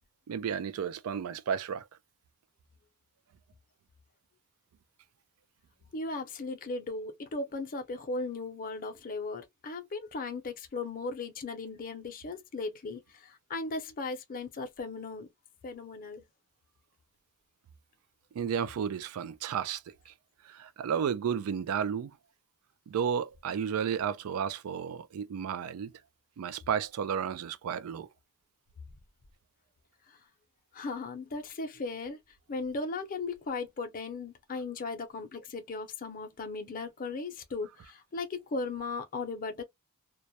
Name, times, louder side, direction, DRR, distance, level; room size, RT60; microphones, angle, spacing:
voice 1, 0.3-1.9 18.3-20.1 20.4-22.1 22.9-25.9 26.4-28.1, right 7 dB, 80° right, 0.3 m, -32 dB
voice 2, 5.9-15.3 15.6-16.2 30.1-30.2 30.7-32.2 32.5-39.6, left 3 dB, 40° left, 0.5 m, -37 dB
2.2 x 2.0 x 2.7 m
head